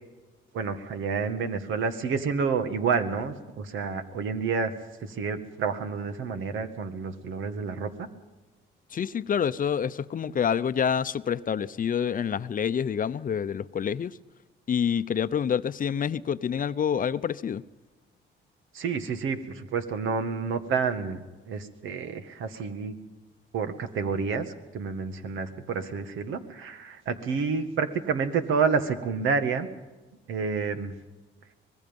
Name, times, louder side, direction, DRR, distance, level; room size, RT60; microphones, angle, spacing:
voice 1, 0.5-4.7 5.0-8.1 18.7-22.9 23.5-29.7 30.3-30.9, right 5 dB, 80° right, 1.9 m, -29 dB
voice 2, 8.9-14.2 14.7-17.6, left 8 dB, 45° left, 0.7 m, -27 dB
24.5 x 20.0 x 5.4 m
cardioid pair, 90°, 20 cm